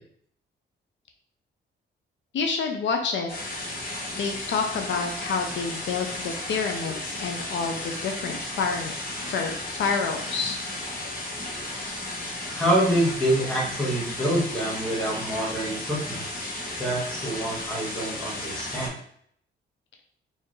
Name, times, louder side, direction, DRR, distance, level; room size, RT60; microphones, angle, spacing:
voice 1, 2.3-3.3 4.2-10.6, left 5 dB, 70° left, 3 dB, 0.6 m, -28 dB
sound 1, 3.3-18.9, left 1 dB, 50° left, 1.3 m, -34 dB
voice 2, 12.5-16.2 16.8-19.0, right 1 dB, 5° left, -5 dB, 1.4 m, -26 dB
4.5 x 3.4 x 3.2 m, 0.64 s
wide cardioid pair, 170°, 20 cm